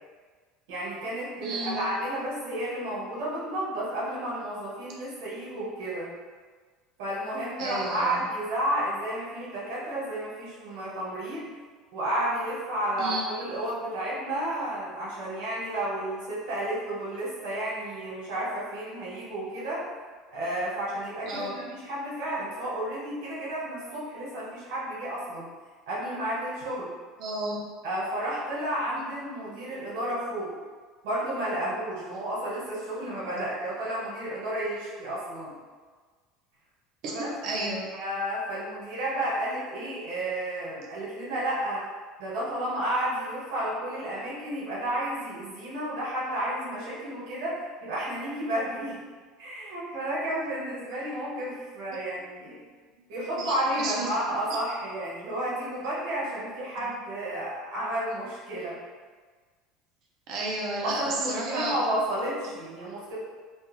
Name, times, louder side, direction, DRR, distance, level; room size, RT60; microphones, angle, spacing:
voice 1, 0.7-6.1 7.0-11.5 11.9-19.8 20.3-25.5 25.9-26.9 27.8-30.5 31.0-35.5 37.0-37.3 37.9-41.8 42.2-49.0 49.4-52.6 53.1-58.8 60.8-63.2, right 1 dB, 85° right, -6 dB, 1.0 m, -32 dB
voice 2, 1.4-1.8 7.6-8.3 13.0-13.3 19.2-19.3 21.3-21.6 27.2-27.6 33.3-33.4 37.0-37.9 53.4-54.1 56.8-56.9 60.3-61.8, right 2 dB, 55° right, -2 dB, 0.6 m, -32 dB
2.3 x 2.2 x 3.0 m, 1.5 s
cardioid pair, 140°, 0 cm